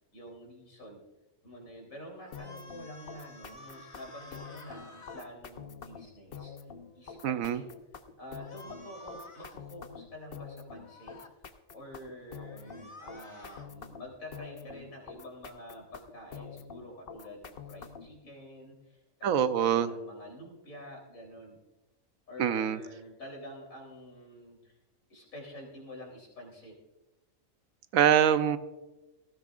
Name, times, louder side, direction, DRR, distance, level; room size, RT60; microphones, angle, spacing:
voice 1, 0.1-1.0 1.4-6.5 6.9-7.7 8.2-11.2 11.7-21.6 22.3-24.8 25.1-26.8, left 1 dB, 80° left, -1 dB, 4.0 m, -48 dB
sound 1, 2.2-5.3 8.4-9.6 10.7-11.3 12.5-13.7, left 1 dB, 25° left, 1.1 m, -51 dB
sound 2, 2.3-18.2, left 6 dB, 50° left, 0.9 m, -46 dB
voice 2, 7.2-7.6 19.2-19.9 22.4-22.8 27.9-28.6, right 9 dB, 85° right, 12 dB, 1.1 m, -24 dB
19.0 x 15.0 x 2.5 m, 1.1 s
omnidirectional pair, 1.4 m